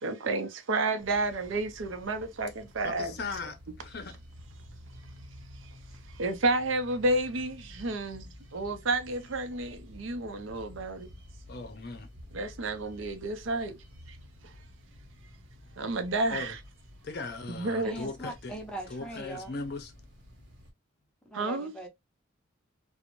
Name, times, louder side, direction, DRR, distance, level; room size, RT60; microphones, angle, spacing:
voice 1, 0.0-3.2 6.1-11.1 12.3-13.8 14.1-14.2 14.4-14.5 15.8-16.6 17.5-18.0 21.3-21.7, right 2 dB, 80° right, 0.5 m, -31 dB
sound 1, 1.0-20.7, equal, 55° right, 1.0 m, -51 dB
voice 2, 2.8-4.2 11.5-12.1 16.3-16.5 17.0-18.6 18.9-19.9, left 3 dB, 50° left, 0.5 m, -38 dB
voice 3, 17.8-19.5 21.3-21.9, right 1 dB, 5° left, 0.5 m, -41 dB
2.5 x 2.0 x 2.9 m
head